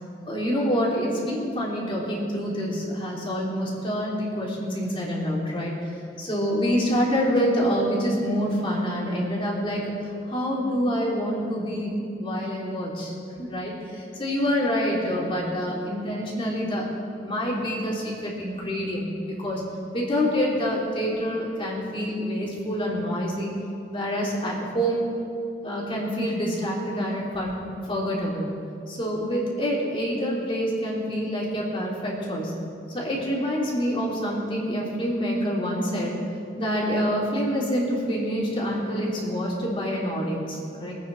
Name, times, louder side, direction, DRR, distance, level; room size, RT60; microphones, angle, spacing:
voice 1, 0.2-5.8 6.2-13.1 13.4-16.9 17.2-19.6 19.9-23.5 23.9-25.0 25.6-27.6 27.8-28.5 28.9-32.5 32.9-36.2 36.6-41.0, equal, 30° left, -4 dB, 3.3 m, -26 dB
24.0 x 9.1 x 4.2 m, 2.5 s
head